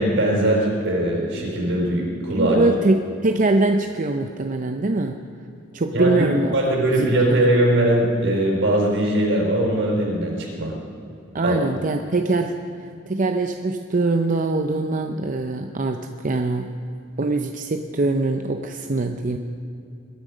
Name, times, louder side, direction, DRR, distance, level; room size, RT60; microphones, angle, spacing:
voice 1, 0.0-2.6 5.9-6.2 6.5-10.7 11.4-11.6, right 1 dB, 70° right, -1 dB, 4.3 m, -20 dB
voice 2, 2.4-5.2 5.7-6.5 6.9-7.5 11.3-12.5 13.1-16.7 17.2-19.4, right 2 dB, 45° right, 5 dB, 0.6 m, -23 dB
22.5 x 10.5 x 5.1 m, 2.6 s
head